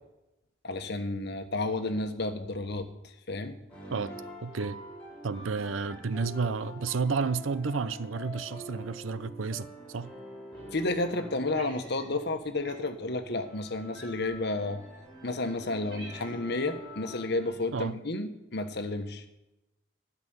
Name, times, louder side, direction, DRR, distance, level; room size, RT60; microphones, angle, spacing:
voice 1, 0.6-3.6 10.7-14.8 15.2-19.2, left 2 dB, 60° left, 8 dB, 1.2 m, -31 dB
sound 1, 3.7-17.6, equal, 5° left, 5.4 m, -46 dB
voice 2, 4.4-4.8 5.2-10.1 17.7-18.0, right 4 dB, 90° right, 16 dB, 0.6 m, -31 dB
Cat, 11.5-12.3 12.6-12.9 13.9-14.5 15.2-15.3 15.6-16.6, right 1 dB, 70° right, 4.2 m, -49 dB
12.5 x 6.0 x 9.4 m, 0.94 s
head